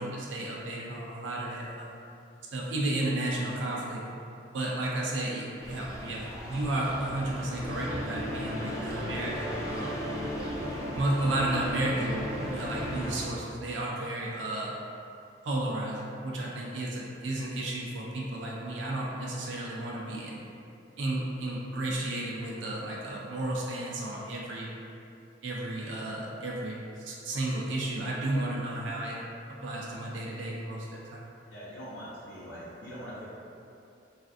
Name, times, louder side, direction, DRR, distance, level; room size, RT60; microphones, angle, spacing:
voice 1, 0.0-2.0 2.5-4.0 4.5-10.1 10.9-12.2 12.5-14.7 15.4-20.4 21.0-24.7 25.4-29.2 29.6-31.3, right 1 dB, 80° right, -3 dB, 0.4 m, -33 dB
sound 1, 5.6-13.3, equal, 15° left, 0.3 m, -39 dB
sound 2, 7.4-13.1, equal, 30° right, 0.6 m, -37 dB
voice 2, 31.5-33.3, equal, 75° left, -9 dB, 0.6 m, -42 dB
3.3 x 2.4 x 2.5 m, 2.6 s
head